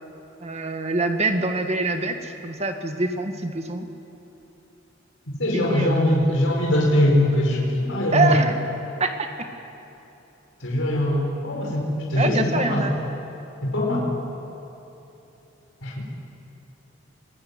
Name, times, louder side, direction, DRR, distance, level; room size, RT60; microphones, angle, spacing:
voice 1, 0.4-3.9 5.5-6.2 8.1-8.6 9.0-9.3 12.1-12.9, right 2 dB, 35° right, 6 dB, 1.9 m, -25 dB
voice 2, 5.4-8.3 10.6-12.9 13.6-14.1 15.8-16.0, left 1 dB, 75° left, -2 dB, 5.0 m, -22 dB
26.5 x 19.5 x 9.7 m, 3.0 s
head